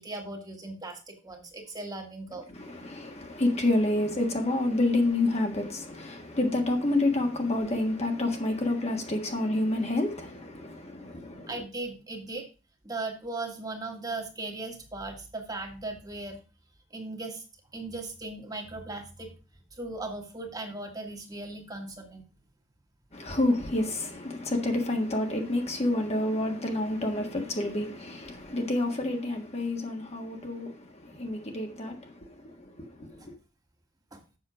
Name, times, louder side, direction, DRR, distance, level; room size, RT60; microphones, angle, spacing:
voice 1, 0.0-2.5 11.5-12.5 12.8-16.4 16.9-17.4 17.7-19.3 19.8-22.2 31.1-31.2 34.1-34.2, right 2 dB, 20° right, 1.8 m, -38 dB
voice 2, 2.5-11.5 23.1-33.3, left 2 dB, 35° left, 1.6 m, -29 dB
7.5 x 6.5 x 4.9 m
head